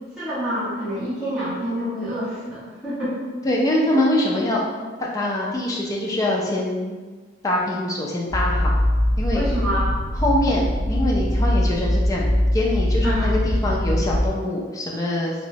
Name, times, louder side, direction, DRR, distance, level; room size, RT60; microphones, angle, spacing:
voice 1, 0.2-3.2 9.3-9.9 13.0-13.3, equal, 5° right, -13 dB, 0.9 m, -27 dB
voice 2, 3.4-4.6 5.0-7.0 7.4-8.8 9.2-9.4 10.1-15.5, left 1 dB, 15° left, -3 dB, 0.3 m, -24 dB
sound 1, 8.3-14.3, equal, 55° right, 1.0 m, -22 dB
2.9 x 2.1 x 2.6 m, 1.4 s
head